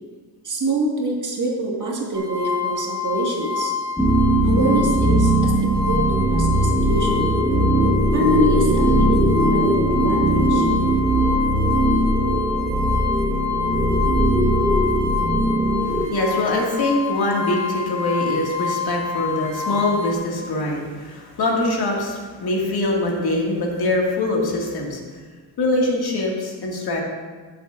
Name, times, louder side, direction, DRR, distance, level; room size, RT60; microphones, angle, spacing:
voice 1, 0.4-3.7 4.4-7.3 8.1-10.7, right 1 dB, 45° right, -1 dB, 1.7 m, -25 dB
sound 1, 2.1-20.1, left 7 dB, 65° right, 1.9 m, -27 dB
sound 2, 4.0-16.1, right 1 dB, ahead, 1.0 m, -19 dB
voice 2, 15.8-25.0 25.6-27.0, left 2 dB, 60° left, -1 dB, 1.9 m, -23 dB
13.0 x 7.1 x 2.5 m, 1.4 s
cardioid pair, 110°, 44 cm